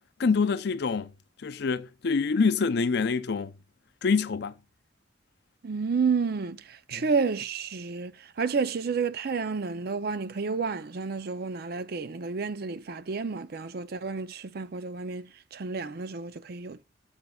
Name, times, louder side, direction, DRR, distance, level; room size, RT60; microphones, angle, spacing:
voice 1, 0.2-1.1 1.4-3.5 4.0-4.5 6.9-7.0, left 5 dB, 65° left, 0.5 m, -26 dB
voice 2, 5.6-16.8, right 5 dB, 60° right, 0.5 m, -30 dB
12.0 x 7.2 x 2.3 m
head